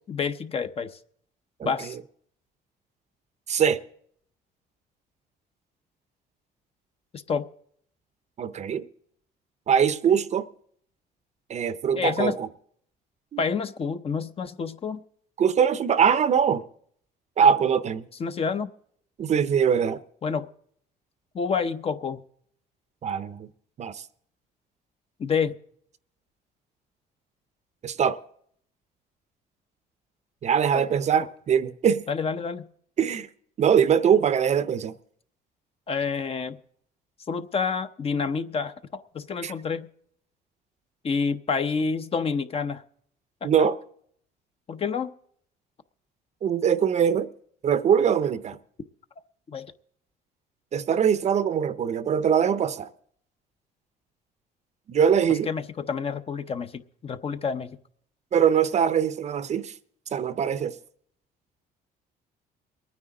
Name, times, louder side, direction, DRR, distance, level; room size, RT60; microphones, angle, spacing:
voice 1, 0.1-0.9 1.6-2.0 7.1-7.5 12.0-12.4 13.4-15.0 18.2-18.7 20.2-20.5 21.3-22.2 25.2-25.5 30.7-30.8 32.1-32.7 35.9-36.6 37.3-39.9 41.0-42.8 43.4-43.5 44.7-45.1 49.5-49.7 55.5-57.8, left 5 dB, 35° left, 0.7 m, -28 dB
voice 2, 1.6-1.9 3.5-3.8 8.4-8.8 9.7-10.5 11.5-12.5 13.3-13.4 15.4-16.7 17.4-18.1 19.2-20.0 23.0-23.5 23.8-24.0 27.8-28.2 30.4-32.0 33.0-33.3 33.6-34.9 39.4-39.5 43.4-43.8 46.4-47.3 47.6-48.6 50.7-52.9 54.9-55.5 58.3-59.7 60.1-60.8, right 7 dB, 40° right, 0.6 m, -22 dB
22.5 x 9.6 x 3.8 m
cardioid pair, 110°, 17 cm